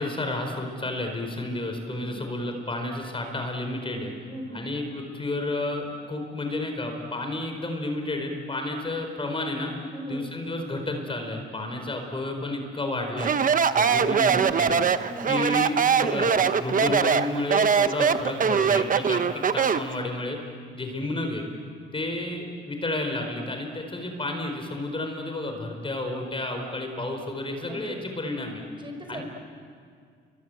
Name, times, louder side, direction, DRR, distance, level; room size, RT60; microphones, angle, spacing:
voice 1, 0.0-4.1 4.5-9.7 10.1-13.3 13.7-14.8 15.2-20.4 20.7-21.4 21.9-28.6 29.1-29.2, left 2 dB, 25° left, 4 dB, 4.7 m, -31 dB
voice 2, 1.9-2.2 3.9-4.6 9.9-10.3 13.8-14.4 15.0-15.6 27.7-28.0 28.8-29.2, equal, 25° right, 4 dB, 5.4 m, -39 dB
Speech, 13.2-19.9, right 6 dB, 45° right, 1.1 m, -22 dB
29.0 x 24.0 x 7.9 m, 2.1 s
cardioid pair, 90°, 20 cm